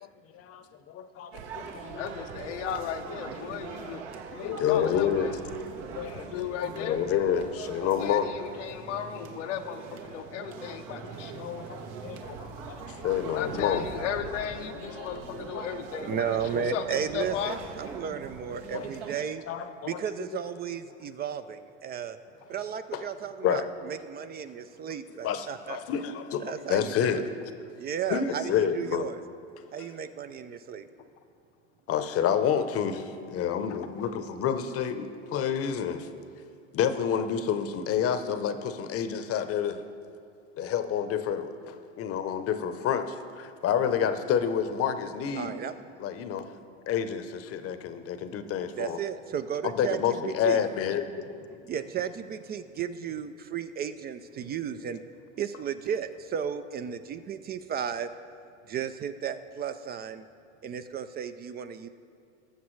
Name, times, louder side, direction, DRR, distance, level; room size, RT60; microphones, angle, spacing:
voice 1, 0.3-1.9 4.4-5.3 5.9-8.3 10.7-11.0 11.3-13.8 15.0-15.1 15.5-15.6 18.1-18.2 18.7-18.9 19.5-20.4 22.9-23.0 23.4-23.7 25.2-27.2 28.1-29.1 31.9-36.1 36.7-39.8 40.6-45.5 46.0-46.5 46.9-49.0 49.7-51.7, left 8 dB, 40° left, 10 dB, 0.8 m, -29 dB
sound 1, 1.3-19.2, right 5 dB, 70° right, 1.2 m, -42 dB
voice 2, 1.9-5.4 6.1-7.0 7.8-11.5 13.3-17.6 28.3-28.4 33.7-33.9, left 8 dB, 85° left, 6 dB, 0.9 m, -36 dB
voice 3, 16.1-19.4 19.8-22.2 22.5-25.8 26.4-27.3 27.8-29.2 29.7-30.9 45.4-45.8 48.8-50.7 51.7-55.0 55.4-58.1 58.7-60.2 60.6-61.9, right 8 dB, 30° right, 10 dB, 0.4 m, -34 dB
19.5 x 7.0 x 3.2 m, 2.4 s
hypercardioid pair, 100°, 36 cm